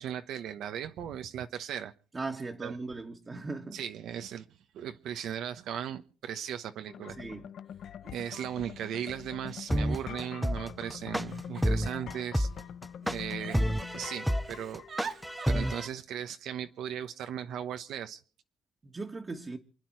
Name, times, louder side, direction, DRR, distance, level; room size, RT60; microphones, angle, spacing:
voice 1, 0.0-1.9 2.6-2.8 3.7-4.4 4.7-7.2 8.1-12.5 13.0-14.8 15.5-18.2, right 9 dB, 80° right, 1.0 m, -37 dB
voice 2, 2.1-3.8 7.2-7.5 18.8-19.6, right 3 dB, 25° right, 1.5 m, -38 dB
sound 1, 6.9-15.4, left 8 dB, 65° left, 0.8 m, -44 dB
Giggle, 7.0-7.1 8.0-8.1 8.4-8.9 9.6-10.7 11.3-12.6 13.0-14.1 14.4-15.7, right 6 dB, 50° right, 1.3 m, -46 dB
sound 2, 9.7-15.9, equal, ahead, 0.6 m, -29 dB
28.5 x 9.5 x 4.6 m
cardioid pair, 90°, 0 cm